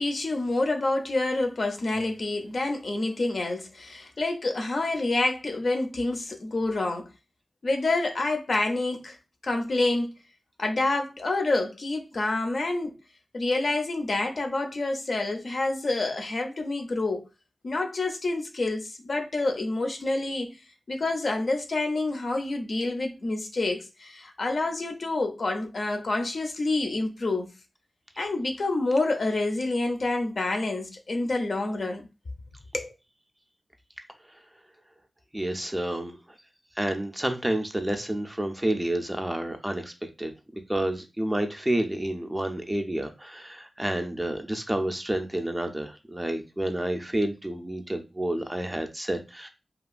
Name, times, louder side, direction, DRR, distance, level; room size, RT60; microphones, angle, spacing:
voice 1, 0.0-7.1 7.6-9.2 9.4-10.1 10.6-13.0 13.3-17.3 17.6-20.6 20.9-27.5 28.2-32.1 32.7-32.9, left 2 dB, 60° left, 0.5 m, -28 dB
voice 2, 35.3-36.2 36.8-40.3 40.7-49.5, right 1 dB, 15° right, 0.4 m, -29 dB
2.8 x 2.3 x 2.4 m
wide cardioid pair, 95°, 0 cm